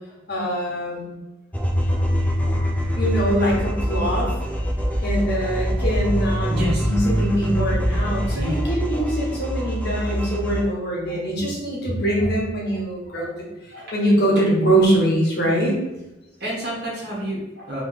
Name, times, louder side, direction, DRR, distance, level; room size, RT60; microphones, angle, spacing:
voice 1, 0.3-1.1 3.0-4.3 5.0-6.5 6.8-15.8, right 1 dB, 55° left, -3 dB, 1.4 m, -23 dB
sound 1, 1.5-10.6, equal, 10° left, 0.5 m, -24 dB
voice 2, 6.5-7.1 7.5-7.6 8.3-8.6 9.3-9.7 10.1-10.2 10.6-10.7 11.1-11.2 12.2-12.3 12.7-12.8 13.1-13.3 13.7-13.9 16.4-17.8, equal, 55° right, -6 dB, 1.4 m, -31 dB
3.4 x 3.2 x 4.2 m, 0.99 s
head